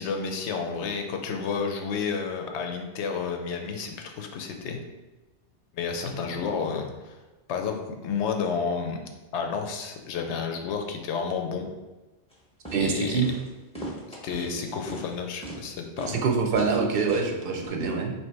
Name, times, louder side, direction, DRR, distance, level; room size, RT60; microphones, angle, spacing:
voice 1, 0.0-4.8 5.7-7.2 7.5-9.0 9.3-11.7 12.8-13.2 14.2-16.2, left 5 dB, 80° left, 4 dB, 0.9 m, -31 dB
sound 1, 12.3-12.4 12.7-12.9 13.2-13.5 13.8-14.5 14.9-15.1 15.4-15.6 16.0-16.2 16.5-16.7 17.1-17.3 17.6-17.7, right 1 dB, 5° left, 0.7 m, -38 dB
voice 2, 12.7-13.3 16.1-18.1, right 4 dB, 60° right, 3 dB, 0.7 m, -25 dB
3.0 x 2.8 x 4.5 m, 1.1 s
omnidirectional pair, 1.2 m